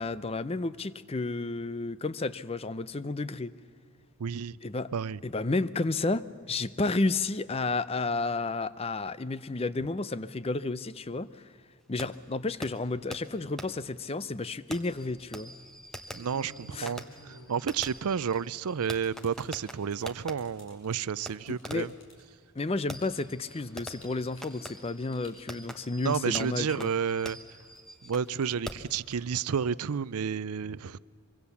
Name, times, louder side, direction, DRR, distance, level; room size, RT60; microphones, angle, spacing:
voice 1, 0.0-3.5 4.6-4.9 5.2-11.4 11.9-15.5 16.7-16.9 21.5-21.9 22.6-26.9, left 3 dB, 25° left, 16 dB, 0.5 m, -31 dB
voice 2, 4.2-4.6 4.9-5.2 16.1-21.9 26.0-27.4 28.0-31.0, right 7 dB, 85° right, 20 dB, 0.5 m, -31 dB
Fireworks, 12.0-12.1 12.6-12.7 13.1-13.2 13.6-13.7 14.7-20.3 21.3-21.4 21.6-22.0 22.9-28.3 28.6-28.9, equal, ahead, 1.1 m, -44 dB
sound 1, 15.9-27.2 27.6-29.6, equal, 55° left, 5.5 m, -55 dB
24.5 x 24.0 x 7.1 m, 2.2 s
head